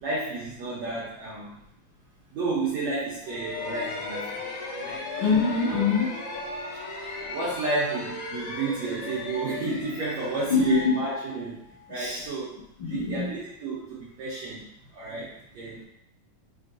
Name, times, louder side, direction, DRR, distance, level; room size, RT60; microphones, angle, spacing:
voice 1, 0.0-1.6 2.3-4.4 4.8-5.0 5.7-5.8 6.6-6.8 7.3-12.6 12.9-14.6 14.9-15.8, right 3 dB, 80° right, -8 dB, 1.6 m, -31 dB
sound 1, 3.2-11.9, left 3 dB, 80° left, 1.6 m, -36 dB
voice 2, 5.2-6.2 10.5-11.0 12.0-12.2 12.8-13.3, left 5 dB, 50° left, -11 dB, 1.5 m, -24 dB
5.6 x 3.4 x 2.6 m, 0.76 s
omnidirectional pair, 4.4 m